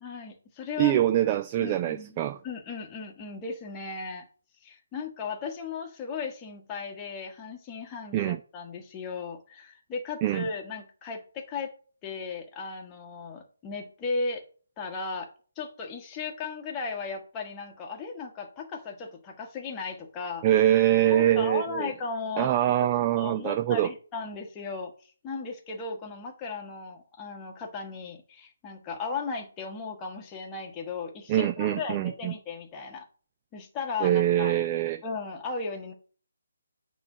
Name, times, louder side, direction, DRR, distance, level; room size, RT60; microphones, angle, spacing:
voice 1, 0.0-1.1 1.6-2.2 2.4-4.3 4.6-11.7 12.0-14.4 14.8-15.3 15.6-20.4 21.1-33.0 33.5-34.5 35.0-35.9, left 4 dB, 15° left, 1.2 m, -36 dB
voice 2, 0.8-2.4 8.1-8.4 10.2-10.5 20.4-21.9 22.4-23.9 31.3-32.3 34.0-35.0, right 12 dB, 25° right, 0.3 m, -24 dB
9.2 x 3.1 x 5.9 m
figure-of-eight pair, 145°, 0 cm